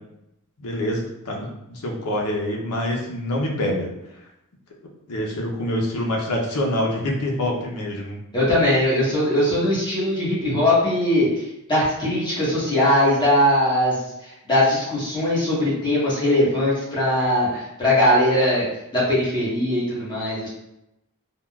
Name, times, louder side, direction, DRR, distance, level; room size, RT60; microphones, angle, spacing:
voice 1, 0.6-3.9 5.1-8.2, left 1 dB, 85° left, 0 dB, 0.7 m, -26 dB
voice 2, 8.3-11.3 11.7-14.0 14.2-18.6 18.9-20.5, left 1 dB, 20° left, -9 dB, 1.1 m, -20 dB
3.6 x 2.2 x 2.2 m, 0.85 s
head